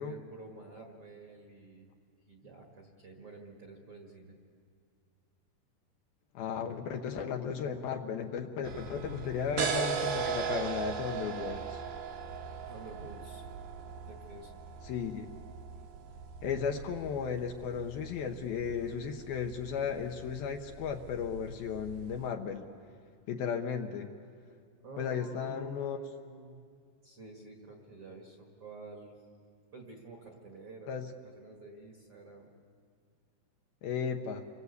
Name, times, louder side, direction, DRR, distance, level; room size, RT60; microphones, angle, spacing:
voice 1, 0.0-1.9 2.3-4.4 12.7-13.5 13.8-14.5 24.8-26.6 27.0-29.2 29.7-30.9 31.2-32.5, right 2 dB, 45° right, 1 dB, 1.9 m, -49 dB
voice 2, 6.3-11.8 14.8-15.3 16.4-22.7 23.3-24.1 25.0-26.0 30.9-31.0 33.8-34.5, left 7 dB, 70° left, 4 dB, 2.5 m, -35 dB
sound 1, 8.6-22.3, right 6 dB, 75° right, 3.9 m, -39 dB
29.5 x 23.0 x 8.2 m, 2.2 s
omnidirectional pair, 5.0 m